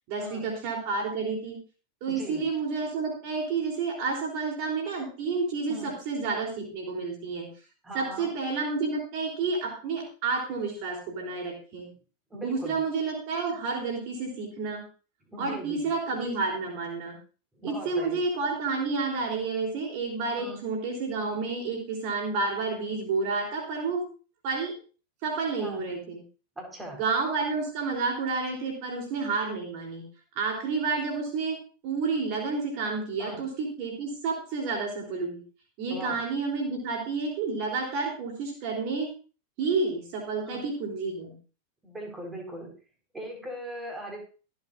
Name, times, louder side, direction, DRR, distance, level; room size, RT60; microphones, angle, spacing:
voice 1, 0.1-1.6 2.0-7.5 7.9-11.9 12.4-14.8 15.4-17.1 17.6-24.0 24.4-24.8 25.2-26.2 27.0-30.0 30.3-31.6 31.8-35.4 35.8-39.1 39.6-41.3, right 4 dB, 45° right, 0 dB, 3.4 m, -30 dB
voice 2, 2.1-2.4 5.7-5.9 7.8-8.3 12.3-12.8 15.3-15.9 17.5-18.2 20.4-20.6 25.6-25.8 26.6-27.0 33.2-33.4 35.9-36.2 40.4-40.6 41.8-42.7 43.1-44.2, equal, 10° right, 1 dB, 4.6 m, -39 dB
24.0 x 8.2 x 2.6 m, 0.36 s
figure-of-eight pair, 90°, 0 cm